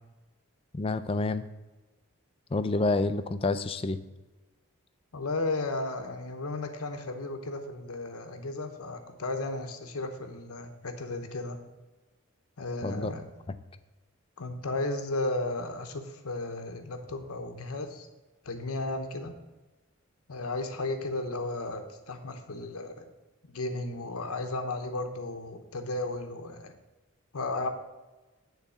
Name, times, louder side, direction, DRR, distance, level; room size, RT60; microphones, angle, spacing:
voice 1, 0.7-1.4 2.5-4.0 12.8-13.1, left 3 dB, 25° left, 12 dB, 0.4 m, -28 dB
voice 2, 5.1-11.6 12.6-13.3 14.4-18.1 18.4-19.3 20.3-23.1 23.4-26.7 27.3-27.7, left 2 dB, 90° left, 6 dB, 0.9 m, -34 dB
9.6 x 4.0 x 6.8 m, 1.2 s
head